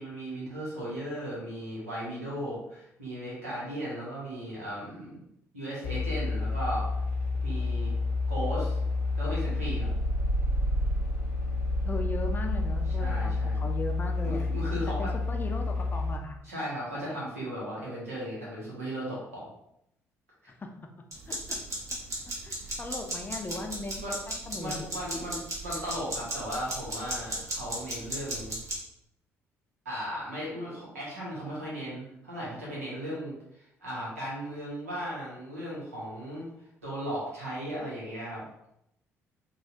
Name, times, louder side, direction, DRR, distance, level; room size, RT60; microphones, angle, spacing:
voice 1, 0.0-5.2 5.5-6.9 7.4-7.9 8.3-8.8 9.2-9.9 12.9-13.7 14.2-15.1 16.4-19.4 20.4-20.5 22.6-22.8 23.7-24.2 24.6-28.6 29.8-36.5 36.8-38.4, equal, 85° right, -6 dB, 1.1 m, -36 dB
sound 1, 5.8-16.1, left 2 dB, 80° left, 0.5 m, -29 dB
voice 2, 11.8-14.5 15.0-16.4 20.6-20.7 21.3-21.6 22.4-24.9, left 2 dB, 25° left, 4 dB, 0.5 m, -38 dB
sound 2, 21.1-28.8, right 1 dB, 40° right, 1.1 m, -36 dB
4.0 x 2.3 x 2.7 m, 0.80 s
figure-of-eight pair, 50°, 8 cm